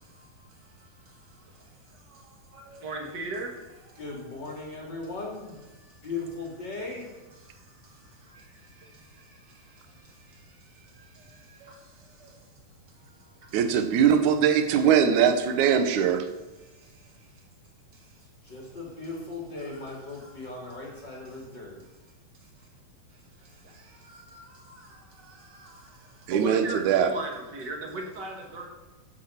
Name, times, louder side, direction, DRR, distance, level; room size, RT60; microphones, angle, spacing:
voice 1, 2.7-3.5 26.3-28.7, right 2 dB, 45° right, 1 dB, 1.5 m, -35 dB
voice 2, 4.0-5.6 6.0-7.1 18.4-21.8, left 3 dB, 30° left, -3 dB, 2.8 m, -37 dB
voice 3, 13.5-16.3 26.3-27.1, right 8 dB, 70° right, 8 dB, 2.0 m, -21 dB
15.5 x 6.4 x 5.8 m, 1.1 s
omnidirectional pair, 4.4 m